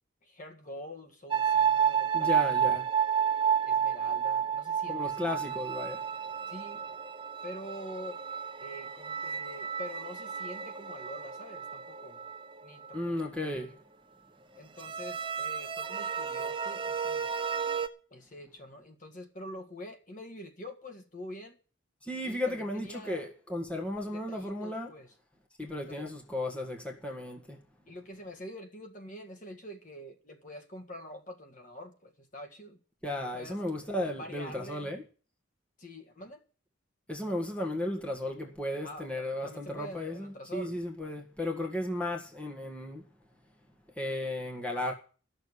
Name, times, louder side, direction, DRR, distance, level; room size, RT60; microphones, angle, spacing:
voice 1, 0.2-2.9 3.6-5.4 6.5-6.8 7.4-8.2 8.6-12.2 12.6-13.5 14.6-17.3 18.1-21.6 22.2-23.3 24.1-25.1 25.8-26.1 27.9-32.8 33.3-33.6 34.1-34.9 35.8-36.4 38.8-40.8, equal, 40° left, 1.8 m, -46 dB
sound 1, 1.3-13.0 14.8-17.9, right 8 dB, 25° right, 0.7 m, -31 dB
voice 2, 2.1-2.8 4.9-6.0 12.9-13.8 22.0-24.9 25.6-27.6 33.0-35.0 37.1-43.0 43.9-44.9, left 1 dB, 5° left, 1.7 m, -35 dB
13.0 x 6.8 x 9.8 m
head